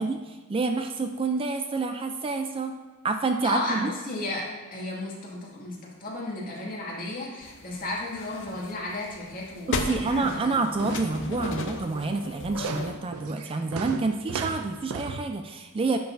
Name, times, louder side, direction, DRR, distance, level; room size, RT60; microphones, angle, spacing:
voice 1, 0.0-2.7 3.0-3.9 9.7-16.0, right 3 dB, 25° right, 6 dB, 0.3 m, -28 dB
voice 2, 3.4-10.5, left 1 dB, 40° left, -5 dB, 2.0 m, -34 dB
sound 1, 7.4-13.0, left 3 dB, 60° left, 0.7 m, -35 dB
sound 2, 9.7-15.2, right 5 dB, 80° right, 0.5 m, -37 dB
10.0 x 6.9 x 2.6 m, 1.3 s
head